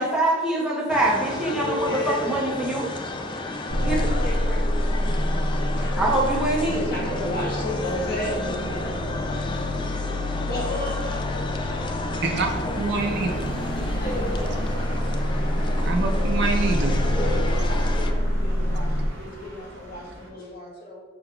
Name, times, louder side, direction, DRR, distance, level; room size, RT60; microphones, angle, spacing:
voice 1, 0.0-2.9 3.9-4.1 6.0-6.9, right 1 dB, 5° right, -6 dB, 0.9 m, -24 dB
sound 1, 0.9-18.1, left 2 dB, 25° left, 0.3 m, -32 dB
voice 2, 1.5-2.4 3.7-6.0 6.6-9.5 10.4-11.9 13.8-15.0 17.0-21.0, left 1 dB, 55° left, -5 dB, 1.4 m, -34 dB
sound 2, 3.7-19.1, equal, 90° left, 0.7 m, -27 dB
voice 3, 12.2-13.5 15.8-17.0, right 3 dB, 60° right, 3 dB, 0.6 m, -26 dB
sound 3, 12.3-20.3, equal, 80° right, 0.9 m, -36 dB
5.9 x 3.3 x 2.3 m, 1.3 s
head